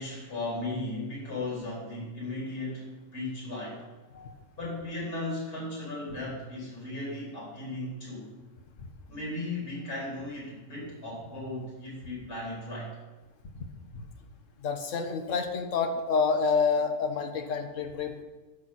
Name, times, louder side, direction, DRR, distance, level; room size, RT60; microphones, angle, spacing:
voice 1, 0.0-2.9 3.1-3.8 4.6-8.3 9.1-12.9, left 2 dB, 85° left, -4 dB, 4.0 m, -36 dB
voice 2, 14.6-18.2, left 5 dB, 55° left, 5 dB, 1.4 m, -28 dB
15.0 x 6.3 x 4.2 m, 1.2 s
omnidirectional pair, 1.6 m